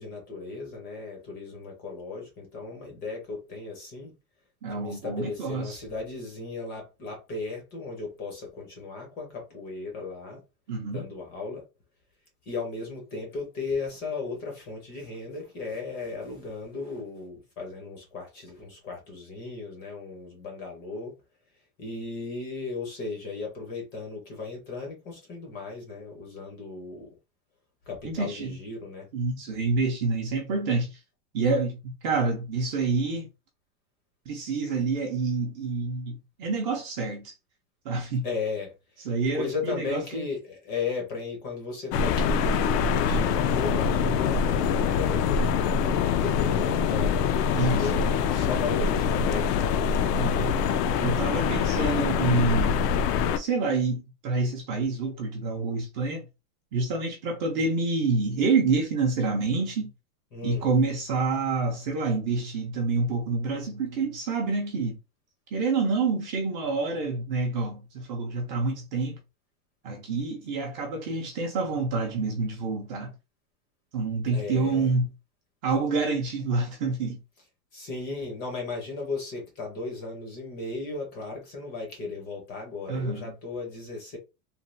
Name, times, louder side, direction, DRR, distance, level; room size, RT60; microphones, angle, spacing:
voice 1, 0.0-4.1 4.6-10.4 10.9-11.6 12.5-21.1 21.8-27.1 27.9-29.1 38.2-39.0 39.3-45.5 46.0-47.3 47.7-50.1 60.3-60.7 74.3-74.9 77.7-84.2, left 4 dB, 20° left, 0.5 m, -36 dB
voice 2, 4.6-5.8 10.7-11.0 28.0-28.6 29.1-31.0 31.3-33.3 34.3-37.3 37.8-38.3 39.0-40.3 47.5-48.0 50.2-50.6 51.0-52.8 53.3-56.3 56.7-59.9 60.4-65.0 65.5-69.2 69.8-73.1 73.9-75.1 75.6-77.2 82.9-83.3, right 3 dB, 30° right, 0.5 m, -27 dB
sound 1, 41.9-53.4, left 6 dB, 80° left, 0.6 m, -24 dB
3.2 x 2.2 x 2.5 m
supercardioid pair, 165°, 47 cm